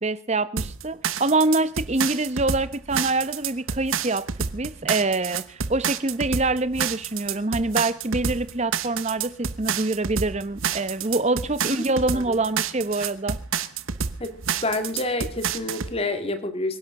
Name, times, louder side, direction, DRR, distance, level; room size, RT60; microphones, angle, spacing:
voice 1, 0.0-4.3 4.5-13.4, right 2 dB, 30° right, 15 dB, 0.9 m, -25 dB
sound 1, 0.6-15.9, right 7 dB, 75° right, 1.0 m, -29 dB
voice 2, 11.8-12.4 14.2-14.4 14.6-16.8, left 2 dB, 30° left, 8 dB, 2.1 m, -28 dB
25.0 x 11.5 x 3.7 m, 0.39 s
head